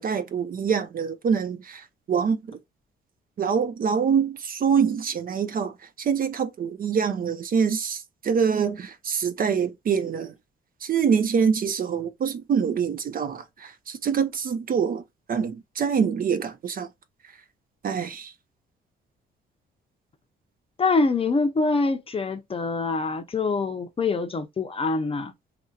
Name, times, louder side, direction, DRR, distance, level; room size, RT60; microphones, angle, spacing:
voice 1, 0.0-2.6 3.4-10.3 10.8-15.0 15.3-16.9 17.8-18.3, right 6 dB, 45° right, 0.6 m, -25 dB
voice 2, 20.8-25.3, left 3 dB, 30° left, 0.6 m, -25 dB
2.9 x 2.6 x 2.3 m
cardioid pair, 90°, 20 cm